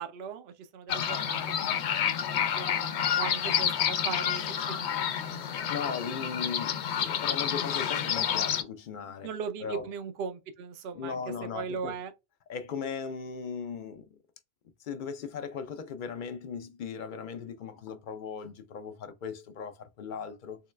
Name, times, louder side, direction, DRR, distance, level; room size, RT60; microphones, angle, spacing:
voice 1, 0.0-5.1 9.2-11.2 11.5-12.1, right 6 dB, 70° right, 0.8 m, -39 dB
sound 1, 0.9-8.6, left 9 dB, 90° left, 0.9 m, -29 dB
voice 2, 5.4-9.3 9.6-9.8 10.9-11.9 12.5-14.2 14.8-20.6, left 6 dB, 55° left, 0.7 m, -38 dB
3.8 x 2.3 x 3.2 m
omnidirectional pair, 1.1 m